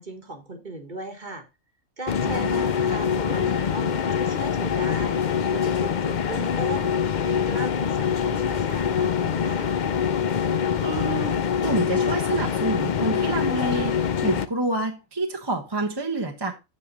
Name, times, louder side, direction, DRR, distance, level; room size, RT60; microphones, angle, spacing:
voice 1, 0.0-1.5 2.0-5.2 5.5-9.7, right 2 dB, 35° right, 1.6 m, -37 dB
sound 1, 2.1-14.5, left 7 dB, 50° left, 0.6 m, -24 dB
voice 2, 2.2-2.6 10.8-16.5, right 2 dB, 20° right, 1.1 m, -28 dB
8.5 x 7.0 x 4.0 m
omnidirectional pair, 1.4 m